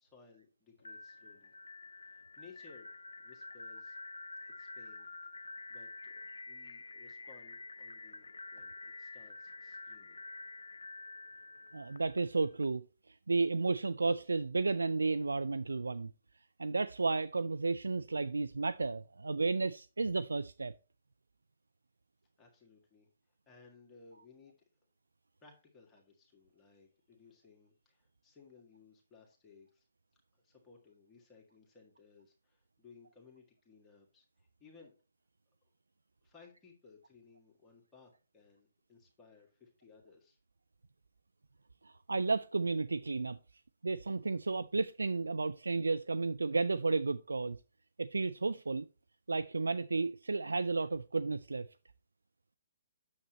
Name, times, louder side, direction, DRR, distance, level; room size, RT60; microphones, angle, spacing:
voice 1, 0.0-1.5 1.9-4.0 4.4-5.1 5.4-10.2 22.4-24.6 25.4-29.9 30.1-34.9 36.2-40.4, left 4 dB, 15° left, 1.8 m, -61 dB
sound 1, 0.8-12.6, left 3 dB, 70° left, 0.4 m, -48 dB
voice 2, 11.7-16.1 16.6-20.7 41.8-43.4 43.8-47.6 48.0-48.9 49.3-51.7, right 3 dB, 75° right, 0.4 m, -33 dB
9.3 x 7.2 x 3.0 m
figure-of-eight pair, 130°, 0 cm